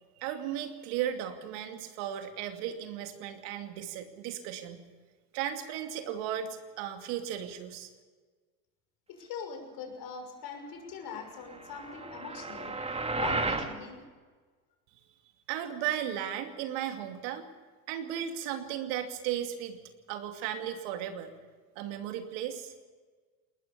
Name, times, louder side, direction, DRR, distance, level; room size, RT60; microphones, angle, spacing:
voice 1, 0.2-4.8 5.3-7.9 15.5-17.5 17.9-19.8 20.1-21.3 21.8-22.7, right 10 dB, 65° right, 6 dB, 2.6 m, -35 dB
voice 2, 9.1-12.8 13.1-14.0, left 6 dB, 55° left, 4 dB, 6.1 m, -42 dB
sound 1, 11.5-13.7, right 3 dB, 15° right, 2.4 m, -33 dB
20.5 x 19.5 x 7.0 m, 1.5 s
hypercardioid pair, 85°, 42 cm